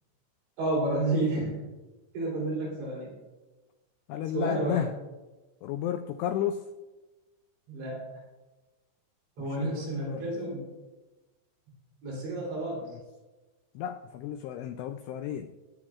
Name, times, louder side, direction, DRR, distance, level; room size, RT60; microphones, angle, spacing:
voice 1, 0.6-1.6 2.1-3.1 4.3-4.8 7.7-8.0 9.4-10.6 12.0-12.8, right 2 dB, 70° right, -4 dB, 5.7 m, -30 dB
voice 2, 4.1-4.9 5.6-6.7 9.4-10.3 12.7-13.0 13.7-15.5, left 10 dB, 85° left, 8 dB, 2.4 m, -33 dB
23.0 x 9.8 x 2.4 m, 1.2 s
omnidirectional pair, 5.4 m